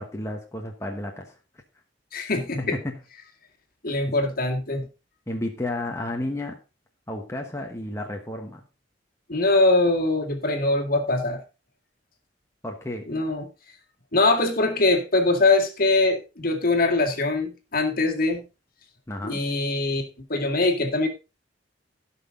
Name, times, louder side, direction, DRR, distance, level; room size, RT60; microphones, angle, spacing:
voice 1, 0.0-1.3 2.6-3.0 5.3-6.6 7.1-8.6 12.6-13.1 19.1-19.4, left 1 dB, 15° left, 1 dB, 1.2 m, -32 dB
voice 2, 2.1-2.8 3.8-4.9 9.3-11.4 13.1-13.5 14.1-18.4 19.2-21.1, left 2 dB, 50° left, 3 dB, 2.0 m, -22 dB
15.5 x 6.0 x 3.7 m, 0.29 s
head